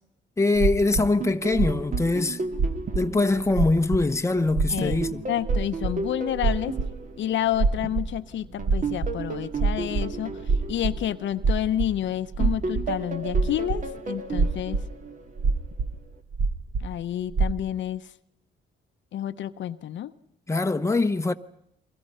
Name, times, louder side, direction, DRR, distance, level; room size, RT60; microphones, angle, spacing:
voice 1, 0.4-2.4 2.9-5.2 20.5-21.3, left 3 dB, 15° left, 1.0 m, -23 dB
sound 1, 0.5-1.0 1.5-2.0 2.5-3.0 3.3-4.0 4.3-7.0 7.5-8.2 8.4-12.1 12.3-12.9 13.3-13.9 14.3-14.9 15.4-15.9 16.3-16.9 17.3-17.5, right 4 dB, 55° right, 2.0 m, -25 dB
sound 2, 1.0-4.3 4.8-8.0 8.6-11.9 12.4-15.6, right 4 dB, 40° right, 2.0 m, -35 dB
voice 2, 5.3-6.7 7.2-10.4 10.7-14.8 16.8-18.0 19.1-20.1, left 11 dB, 70° left, 0.9 m, -29 dB
29.0 x 23.5 x 5.6 m
cardioid pair, 90°, 20 cm